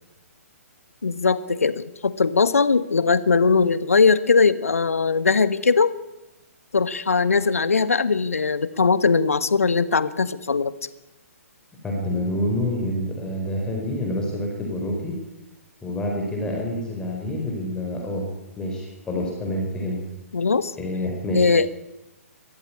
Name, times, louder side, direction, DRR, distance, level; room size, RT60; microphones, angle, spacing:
voice 1, 1.0-5.9 6.7-10.7 20.3-20.7 21.3-21.7, left 4 dB, 65° left, 15 dB, 1.3 m, -20 dB
voice 2, 11.8-15.2 15.8-18.3 18.6-20.0 20.7-21.5, left 1 dB, 10° left, -1 dB, 4.4 m, -27 dB
22.5 x 14.5 x 8.6 m, 0.99 s
figure-of-eight pair, 125°, 8 cm